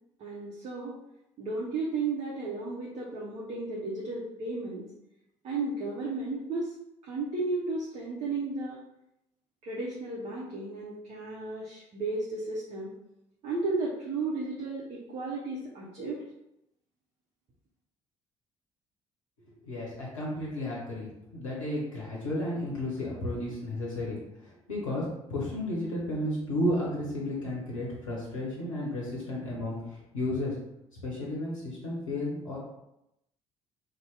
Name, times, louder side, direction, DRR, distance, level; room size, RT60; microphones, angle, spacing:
voice 1, 0.2-1.0 1.4-4.8 5.4-6.7 7.0-8.8 9.6-12.9 13.4-16.2, right 3 dB, 40° right, -5 dB, 0.7 m, -34 dB
voice 2, 19.6-30.6 31.0-32.6, left 1 dB, 80° left, -5 dB, 0.7 m, -33 dB
2.7 x 2.1 x 3.2 m, 0.86 s
figure-of-eight pair, 50°, 16 cm